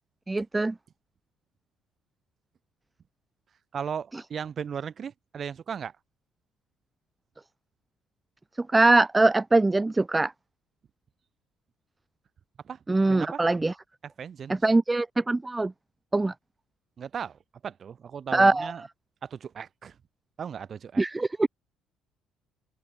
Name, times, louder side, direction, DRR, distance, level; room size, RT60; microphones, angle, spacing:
voice 1, 0.3-0.7 8.7-10.3 12.9-13.7 14.6-15.7 16.1-16.3 18.3-18.7 21.0-21.5, right 2 dB, 10° right, 1.0 m, -22 dB
voice 2, 3.7-5.9 12.6-12.8 13.1-13.4 14.0-14.6 17.0-18.8 19.2-20.0 20.4-21.0, right 7 dB, 30° right, 6.8 m, -36 dB
open air
cardioid pair, 165°, 0 cm